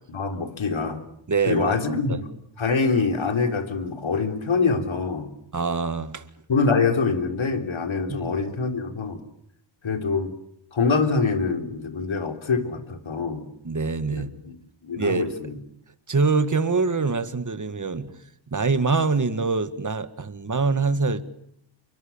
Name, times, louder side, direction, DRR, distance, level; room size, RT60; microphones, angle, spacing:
voice 1, 0.1-1.0 1.5-2.2 2.6-5.3 6.5-9.2 9.8-10.3 10.7-13.4 14.1-14.5 14.8-15.6, left 4 dB, 80° left, 6 dB, 3.7 m, -25 dB
voice 2, 1.3-2.2 5.5-6.2 8.1-8.3 13.6-14.3 15.0-15.2 16.1-18.1 18.5-21.2, right 4 dB, 40° right, 12 dB, 1.9 m, -24 dB
28.0 x 23.5 x 7.2 m, 0.74 s
wide cardioid pair, 80°, 46 cm